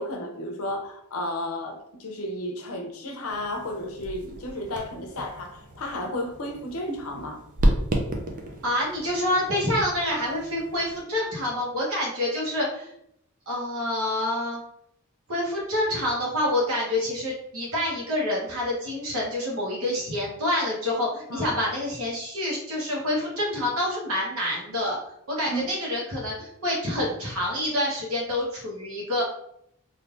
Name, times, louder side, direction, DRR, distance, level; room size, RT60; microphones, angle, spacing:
voice 1, 0.0-7.4 21.3-21.5 25.5-25.7, left 1 dB, 80° left, 3 dB, 0.7 m, -33 dB
sound 1, 3.3-11.0, right 1 dB, 40° right, 0.5 m, -31 dB
voice 2, 8.6-12.9 13.5-14.6 15.3-25.0 25.3-29.2, left 1 dB, 80° right, -3 dB, 1.2 m, -27 dB
3.3 x 2.7 x 2.6 m, 0.76 s
head